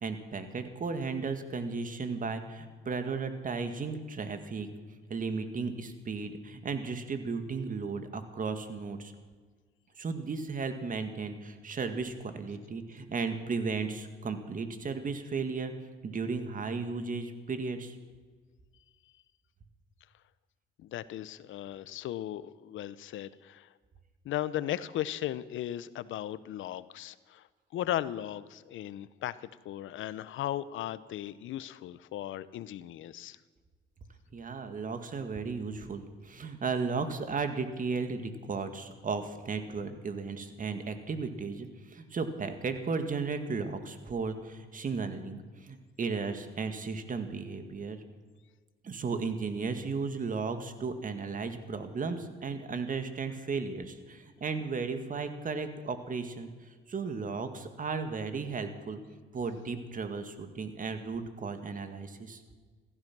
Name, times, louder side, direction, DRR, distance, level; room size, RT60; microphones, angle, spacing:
voice 1, 0.0-4.7 5.1-9.1 10.0-15.7 16.0-18.0 34.3-48.0 48.8-59.0 59.3-62.4, right 4 dB, 45° right, 8 dB, 2.0 m, -35 dB
voice 2, 20.8-23.7 24.2-27.5 27.7-33.4, left 12 dB, 80° left, 17 dB, 0.8 m, -36 dB
16.0 x 14.5 x 6.1 m, 1.5 s
cardioid pair, 90°, 20 cm